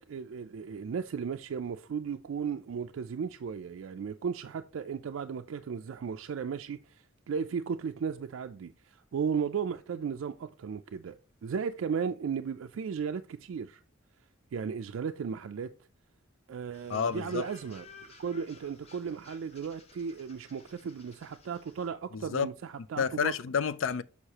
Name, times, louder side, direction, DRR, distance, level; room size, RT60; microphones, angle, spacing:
voice 1, 0.0-11.2 11.4-13.8 14.5-15.7 16.5-17.9 18.2-23.3, right 6 dB, 70° right, 0.3 m, -35 dB
sound 1, 16.7-21.9, left 3 dB, 30° left, 0.8 m, -55 dB
voice 2, 16.9-17.5 22.1-22.5 23.0-24.0, left 6 dB, 65° left, 0.4 m, -30 dB
6.4 x 5.6 x 2.9 m
head